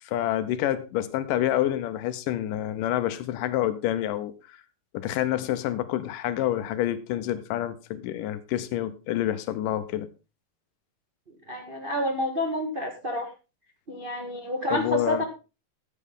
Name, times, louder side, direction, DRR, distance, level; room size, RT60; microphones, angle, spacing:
voice 1, 0.0-4.6 4.9-10.1 14.7-15.3, left 12 dB, 75° left, 2.2 m, -28 dB
voice 2, 11.5-13.3 13.9-15.2, equal, 55° right, 0.5 m, -29 dB
14.0 x 8.4 x 3.7 m
omnidirectional pair, 4.1 m